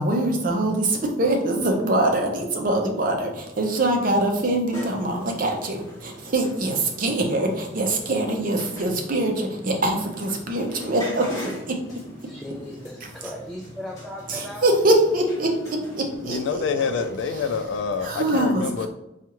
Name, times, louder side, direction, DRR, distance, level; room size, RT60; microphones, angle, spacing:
voice 1, 0.0-11.8 14.3-17.1 18.0-18.9, right 1 dB, 50° right, 2 dB, 0.6 m, -24 dB
sound 1, 4.7-17.4, left 1 dB, 20° left, 1.4 m, -42 dB
voice 2, 12.2-14.7, left 1 dB, ahead, -3 dB, 0.4 m, -37 dB
voice 3, 16.2-18.9, left 5 dB, 85° left, 9 dB, 0.4 m, -27 dB
4.3 x 2.4 x 2.9 m, 0.90 s
head